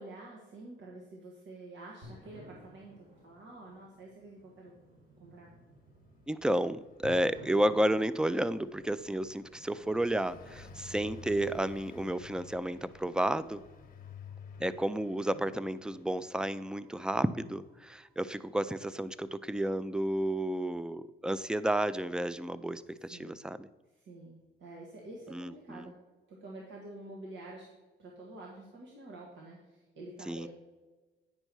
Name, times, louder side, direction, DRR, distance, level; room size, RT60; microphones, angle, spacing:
voice 1, 0.0-4.7 5.2-5.5 15.3-15.5 23.1-23.4 23.9-25.9 26.3-27.7 28.0-30.5, right 2 dB, 70° right, -2 dB, 1.5 m, -48 dB
sound 1, 2.0-20.0, equal, 50° right, 2.7 m, -57 dB
Car passing by, 5.9-16.9, left 5 dB, 45° left, 1.0 m, -53 dB
voice 2, 6.3-13.6 14.6-23.7 25.3-25.9 30.3-30.5, right 1 dB, 5° right, 15 dB, 0.3 m, -32 dB
9.0 x 5.4 x 4.6 m, 1.2 s
cardioid pair, 90°, 20 cm